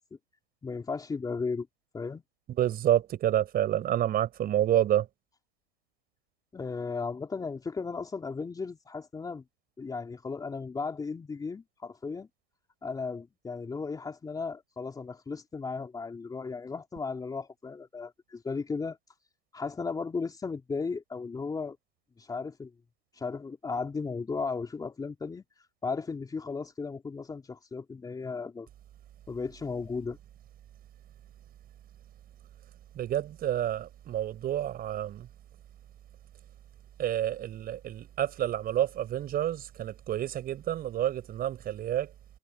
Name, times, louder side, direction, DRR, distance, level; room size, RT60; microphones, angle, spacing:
voice 1, 0.6-1.7 1.9-2.2 6.5-9.4 9.8-12.3 12.8-19.0 19.5-21.8 22.2-22.7 23.1-25.4 25.8-28.7 29.3-30.2, left 4 dB, 10° left, 3.4 m, -35 dB
voice 2, 2.6-5.1 33.0-35.3 37.0-42.1, right 12 dB, 30° right, 5.4 m, -29 dB
hypercardioid pair, 135°, 33 cm